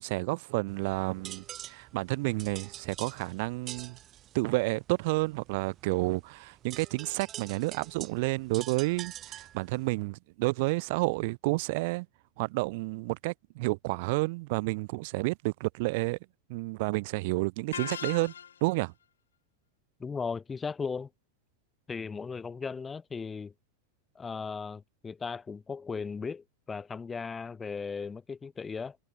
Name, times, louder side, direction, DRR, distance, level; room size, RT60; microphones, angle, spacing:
voice 1, 0.0-4.0 4.3-12.1 12.4-16.2 16.5-18.3 18.6-18.9, right 25 dB, 50° right, 1.0 m, -30 dB
sound 1, 0.7-9.9, right 12 dB, 30° right, 1.3 m, -46 dB
sound 2, 17.7-18.8, left 8 dB, 65° left, 0.4 m, -38 dB
voice 2, 20.0-21.1 21.9-23.5 24.1-29.0, left 5 dB, 15° left, 1.0 m, -37 dB
figure-of-eight pair, 90°, 0 cm